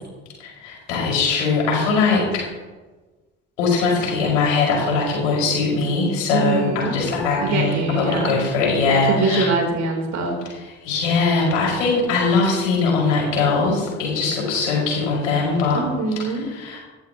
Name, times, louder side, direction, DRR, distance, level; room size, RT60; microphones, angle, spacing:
voice 1, 0.4-2.4 3.6-9.5 10.8-15.8 16.5-16.8, left 4 dB, 70° left, -3 dB, 5.7 m, -21 dB
voice 2, 6.3-7.0 7.4-8.4 8.9-10.4 15.7-16.5, right 3 dB, 45° right, 2 dB, 3.7 m, -23 dB
19.0 x 15.0 x 3.0 m, 1.3 s
figure-of-eight pair, 55°, 39 cm